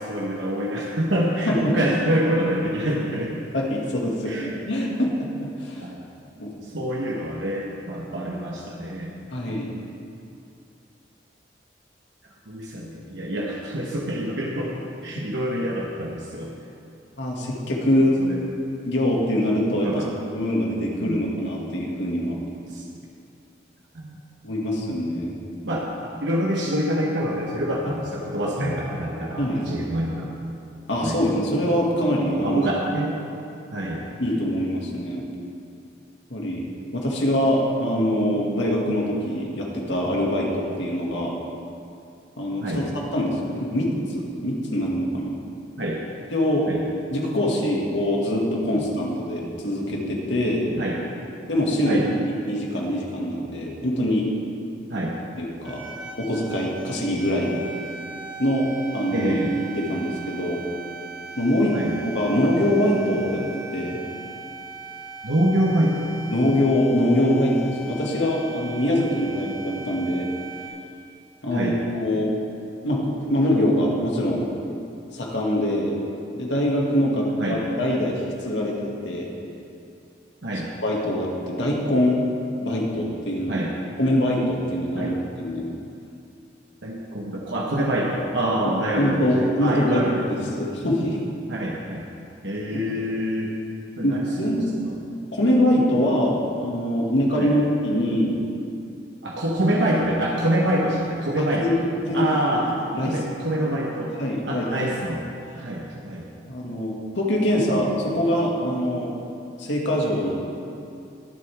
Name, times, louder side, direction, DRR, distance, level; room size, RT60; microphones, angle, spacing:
voice 1, 0.0-3.3 4.3-4.5 5.8-6.0 6.6-9.1 12.5-16.5 18.2-18.4 19.8-20.1 21.0-21.2 22.7-22.8 23.9-24.2 25.6-30.3 31.0-31.2 32.4-33.2 33.7-34.1 42.6-42.8 45.8-46.0 46.7-46.8 48.8-48.9 50.8-51.0 51.8-52.1 54.9-55.1 59.1-59.5 61.7-62.0 65.2-66.1 71.5-71.8 77.4-77.6 80.4-80.7 83.5-83.8 84.9-85.2 86.8-90.6 91.5-92.1 92.4-93.5 94.0-94.5 94.8-94.9 97.4-97.5 99.2-101.8 102.1-104.1 104.4-105.2 105.6-106.3, right 1 dB, 80° right, -3 dB, 1.3 m, -26 dB
voice 2, 3.5-5.1 5.6-5.8 6.4-6.5 9.3-9.7 17.2-18.2 18.8-20.0 20.3-22.4 24.4-25.5 28.6-28.8 29.4-29.7 30.9-32.6 34.2-35.2 36.3-41.3 42.4-45.3 46.3-46.7 47.1-50.7 51.5-54.3 55.4-55.8 56.2-57.6 58.4-58.7 58.9-59.3 59.8-60.6 61.4-61.7 62.0-63.4 63.7-64.0 66.3-70.3 71.4-72.3 72.8-74.5 75.1-76.0 76.3-79.3 80.8-82.3 82.6-83.6 84.0-85.7 89.0-91.2 94.0-94.7 95.3-98.4 101.4-101.7 102.0-102.3 102.5-102.6 102.9-103.2 104.2-104.9 106.5-109.1 109.6-110.3, equal, 80° left, -2 dB, 2.3 m, -23 dB
sound 1, 55.6-70.7, right 3 dB, 5° right, 3.4 m, -39 dB
21.5 x 8.0 x 3.6 m, 2.6 s
head